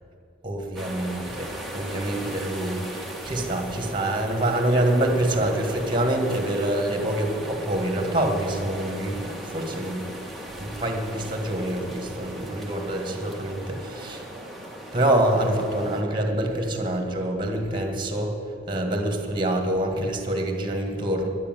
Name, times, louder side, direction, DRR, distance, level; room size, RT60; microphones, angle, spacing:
voice 1, 0.4-10.1 10.6-14.3 14.9-18.4 18.7-21.3, right 1 dB, 25° right, 3 dB, 1.9 m, -26 dB
sound 1, 0.7-16.0, right 1 dB, ahead, 1.5 m, -38 dB
11.5 x 9.8 x 9.3 m, 2.7 s
head